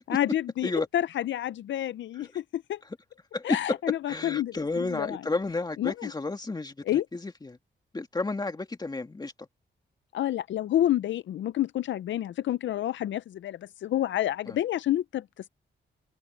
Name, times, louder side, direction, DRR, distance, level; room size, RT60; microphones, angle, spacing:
voice 1, 0.1-2.8 3.4-4.5 4.8-5.2 5.8-6.1 6.9-7.1 10.1-15.2, left 12 dB, 85° left, 0.5 m, -29 dB
voice 2, 3.3-3.8 4.1-7.6 7.9-9.5 14.5-14.6, left 3 dB, 20° left, 2.1 m, -32 dB
open air
wide cardioid pair, 120°, 19 cm